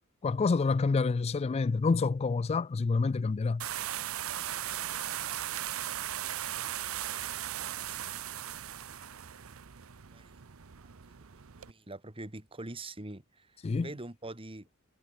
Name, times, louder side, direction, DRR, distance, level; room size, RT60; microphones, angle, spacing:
voice 1, 0.2-3.7 13.6-13.9, left 4 dB, 30° left, 0.3 m, -28 dB
sound 1, 3.6-11.7, right 11 dB, 70° right, 0.8 m, -38 dB
voice 2, 11.7-14.7, right 2 dB, 25° right, 2.1 m, -45 dB
head